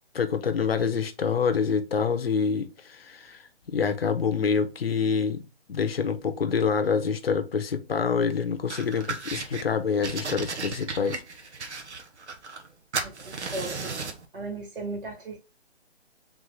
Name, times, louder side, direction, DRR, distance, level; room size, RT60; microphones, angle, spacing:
voice 1, 0.1-3.4 3.7-5.4 5.7-11.2, left 6 dB, 60° left, 0.8 m, -26 dB
sound 1, 8.7-9.6 10.0-12.7 12.9-14.2, right 4 dB, 80° right, 1.0 m, -35 dB
voice 2, 13.0-13.9 14.3-15.4, right 2 dB, 50° right, 1.7 m, -36 dB
3.7 x 3.2 x 3.6 m
hypercardioid pair, 175°, 34 cm